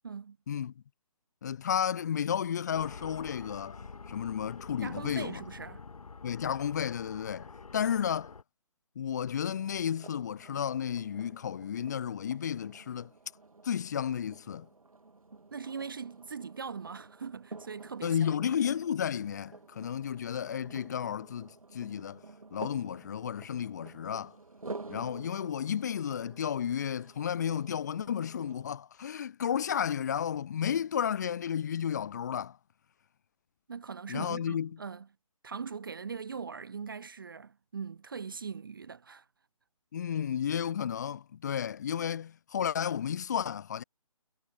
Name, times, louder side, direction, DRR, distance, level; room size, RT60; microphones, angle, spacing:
voice 1, 0.0-0.4 4.8-5.8 15.5-18.3 33.7-35.1 35.4-39.3, right 6 dB, 35° right, 0.4 m, -41 dB
voice 2, 1.4-5.4 6.2-8.3 9.0-13.1 13.6-14.7 18.0-22.2 22.5-24.3 24.9-32.6 34.1-34.7 39.9-43.8, left 8 dB, 30° left, 0.7 m, -32 dB
sound 1, 2.7-8.4, left 4 dB, 70° left, 0.7 m, -47 dB
sound 2, 9.4-28.7, right 3 dB, 65° right, 3.9 m, -50 dB
figure-of-eight pair, 145°, 19 cm